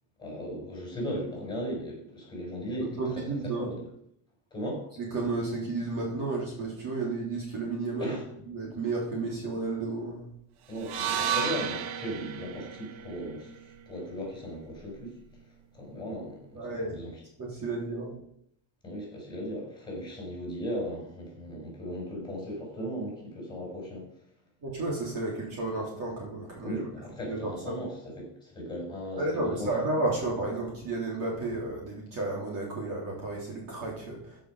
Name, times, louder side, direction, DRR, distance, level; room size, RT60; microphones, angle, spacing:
voice 1, 0.2-3.8 4.5-4.9 8.0-8.2 10.7-15.2 15.7-17.2 18.8-24.1 26.6-29.7, equal, 10° left, -2 dB, 5.7 m, -37 dB
voice 2, 3.0-3.7 5.0-8.2 8.5-10.2 16.5-16.9 17.4-18.1 24.6-26.8 27.3-27.4 27.7-27.8 29.2-34.4, right 2 dB, 40° right, -3 dB, 3.3 m, -32 dB
sound 1, 10.8-15.0, right 8 dB, 85° right, 1.2 m, -34 dB
14.5 x 6.5 x 5.5 m, 0.72 s
cardioid pair, 175°, 49 cm